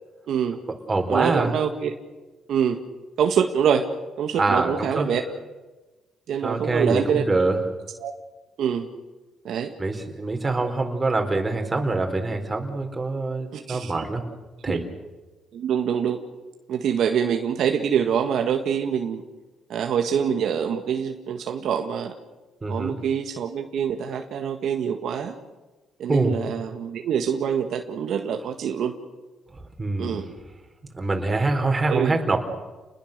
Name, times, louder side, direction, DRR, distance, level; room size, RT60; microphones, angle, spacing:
voice 1, 0.3-0.6 1.1-1.9 2.5-2.8 3.2-3.8 4.2-5.2 6.3-7.3 8.0-8.1 8.6-8.9 9.4-9.7 13.5-14.0 14.6-14.8 15.5-16.2 16.7-19.2 19.7-22.1 22.7-25.3 26.0-28.9 30.0-30.3 31.9-32.1, right 8 dB, 70° right, 5 dB, 1.6 m, -25 dB
voice 2, 0.9-1.5 4.4-5.1 6.4-7.6 9.8-14.2 14.6-14.8 22.6-23.0 26.1-26.4 29.5-30.2 30.9-32.4, right 3 dB, 25° right, 4 dB, 4.2 m, -24 dB
29.5 x 21.0 x 6.7 m, 1.2 s
cardioid pair, 90°, 0 cm